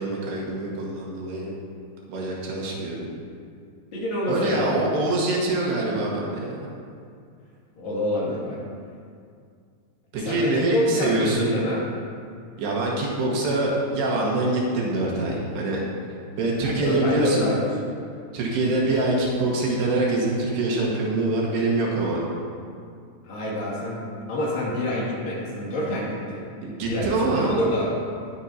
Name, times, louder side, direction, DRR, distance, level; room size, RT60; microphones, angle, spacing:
voice 1, 0.0-1.5 2.1-3.1 4.3-6.6 10.1-11.5 12.6-15.8 16.4-17.5 18.3-22.3 26.6-27.5, right 2 dB, 90° right, -4 dB, 3.9 m, -24 dB
voice 2, 3.9-4.8 7.8-8.6 10.1-11.8 16.6-17.7 23.2-26.5 26.9-27.9, left 1 dB, 60° left, -6 dB, 4.0 m, -27 dB
19.0 x 7.5 x 2.9 m, 2.3 s
omnidirectional pair, 4.7 m